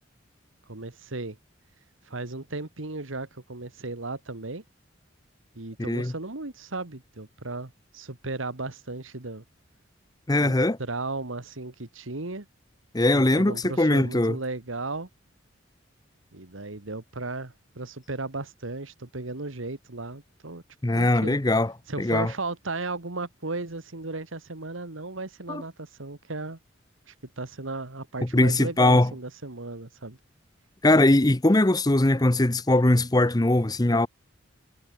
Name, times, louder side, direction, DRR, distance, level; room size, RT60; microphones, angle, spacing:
voice 1, 0.7-1.4 2.1-4.6 5.6-9.4 10.3-10.5 10.8-12.5 13.1-15.1 16.3-20.6 20.9-21.4 21.9-26.6 27.1-30.2, right 3 dB, 90° right, 1.9 m, -35 dB
voice 2, 10.3-10.8 12.9-14.4 20.8-21.7 22.0-22.3 25.5-25.6 28.3-29.1 30.8-34.1, left 2 dB, 20° left, 0.8 m, -21 dB
head